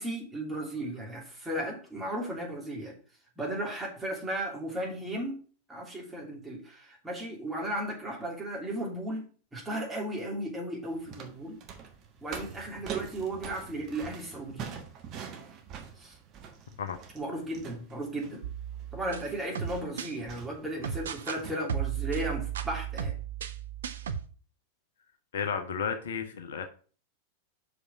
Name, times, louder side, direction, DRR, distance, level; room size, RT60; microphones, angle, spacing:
voice 1, 0.0-2.9 3.4-5.4 5.7-11.6 12.2-14.7 16.0-16.2 17.1-18.4 18.9-23.1, right 1 dB, 10° right, -2 dB, 2.9 m, -35 dB
sound 1, 10.8-21.5, right 7 dB, 35° right, 1.2 m, -45 dB
sound 2, 18.4-20.1 20.8-21.4 21.7-24.3, right 9 dB, 65° right, 0.6 m, -35 dB
voice 2, 25.3-26.7, left 6 dB, 60° left, 7 dB, 0.8 m, -32 dB
6.1 x 5.2 x 5.7 m, 0.40 s
figure-of-eight pair, 90°, 0 cm